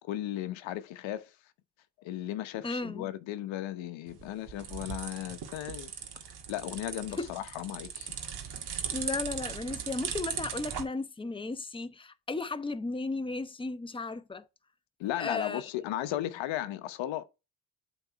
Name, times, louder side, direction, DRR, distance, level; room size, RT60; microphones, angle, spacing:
voice 1, 0.0-1.3 2.0-5.9 6.5-8.1 15.0-17.2, left 13 dB, 75° left, 0.9 m, -36 dB
voice 2, 2.6-3.1 8.9-14.4 15.1-15.6, left 3 dB, 10° left, 0.9 m, -35 dB
sound 1, 4.1-10.8, right 7 dB, 55° right, 1.8 m, -38 dB
8.0 x 4.0 x 4.5 m
supercardioid pair, 65°, 46 cm